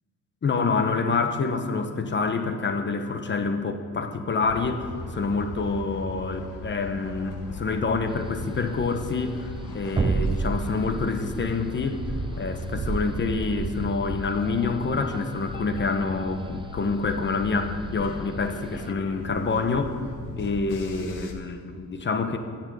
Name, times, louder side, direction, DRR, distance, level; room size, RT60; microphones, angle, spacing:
voice 1, 0.4-4.9 5.1-12.0 12.4-20.0 20.4-22.4, left 4 dB, 35° left, 8 dB, 1.1 m, -27 dB
sound 1, 4.4-21.3, left 3 dB, 85° left, 1.6 m, -38 dB
sound 2, 8.1-18.9, right 4 dB, 15° right, 0.3 m, -32 dB
14.5 x 5.9 x 8.7 m, 2.3 s
cardioid pair, 125°, 31 cm